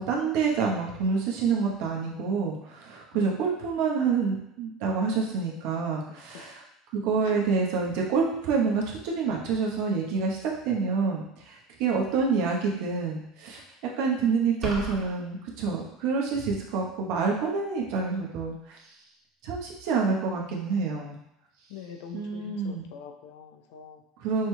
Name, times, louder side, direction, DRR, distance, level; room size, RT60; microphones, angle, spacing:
voice 1, 0.0-6.6 6.9-13.6 14.0-18.8 19.4-21.2 22.1-22.9 24.2-24.5, right 5 dB, 65° right, -1 dB, 1.0 m, -27 dB
voice 2, 6.1-6.5 7.2-7.4 21.7-24.0, left 7 dB, 70° left, 4 dB, 0.5 m, -44 dB
sound 1, 14.6-15.1, equal, 25° right, 1.5 m, -33 dB
6.1 x 3.0 x 2.2 m, 0.80 s
hypercardioid pair, 80°, 0 cm